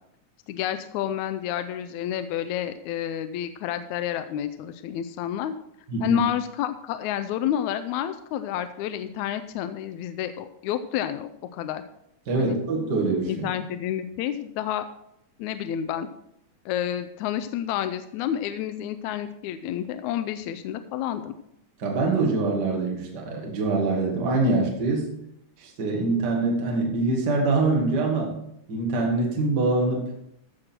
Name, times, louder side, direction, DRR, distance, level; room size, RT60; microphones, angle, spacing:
voice 1, 0.5-5.5 6.0-11.8 12.4-12.6 13.3-14.9 15.4-16.1 16.7-21.4, left 11 dB, 80° left, 10 dB, 1.8 m, -30 dB
voice 2, 5.9-6.2 12.3-13.5 21.8-25.1 25.6-28.4 28.7-30.1, right 3 dB, 40° right, 0 dB, 2.0 m, -24 dB
15.0 x 6.4 x 4.4 m, 0.77 s
omnidirectional pair, 3.6 m